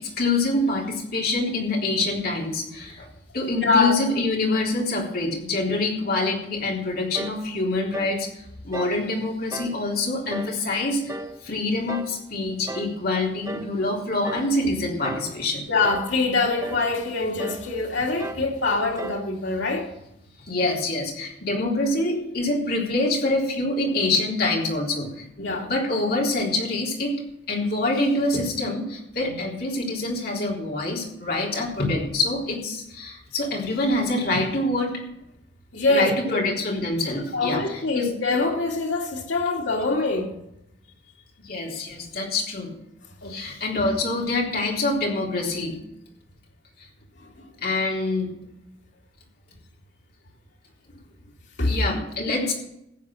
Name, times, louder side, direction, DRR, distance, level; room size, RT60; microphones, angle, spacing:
voice 1, 0.0-3.1 3.3-8.3 8.6-11.1 11.4-15.7 20.5-27.1 27.5-34.9 35.9-38.1 41.4-42.7 43.3-45.8 47.6-48.3 51.6-52.6, left 2 dB, 55° left, 3.8 m, -25 dB
voice 2, 3.6-4.0 15.7-19.9 25.4-25.7 29.2-29.3 35.7-36.4 37.3-40.3 43.2-43.4 47.2-47.5 51.6-51.8 52.3-52.4, left 3 dB, 80° left, 2.8 m, -24 dB
sound 1, 7.1-7.4 7.9-8.2 8.7-9.0 9.5-9.8 10.3-10.6 11.1-11.4 11.9-12.2 12.7-13.0 13.5-13.8 14.2-14.5 15.0-15.4 15.8-16.2 16.6-16.9 17.4-17.7 18.2-18.5 19.0-19.3, right 1 dB, 15° right, 0.6 m, -35 dB
15.0 x 8.6 x 6.5 m
head